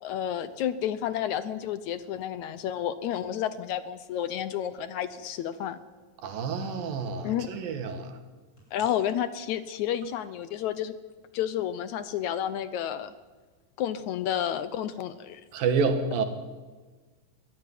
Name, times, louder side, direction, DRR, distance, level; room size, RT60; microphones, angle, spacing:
voice 1, 0.0-5.8 7.2-7.5 8.7-11.0 11.3-13.1 13.8-15.4, left 10 dB, 70° left, 13 dB, 1.9 m, -31 dB
sound 1, 3.7-3.8 4.2-5.9 8.6-8.8, left 6 dB, 25° left, 7.5 m, -47 dB
voice 2, 6.2-8.1 15.5-16.3, right 5 dB, 90° right, 7 dB, 3.6 m, -28 dB
22.5 x 14.5 x 10.0 m, 1.4 s
omnidirectional pair, 3.9 m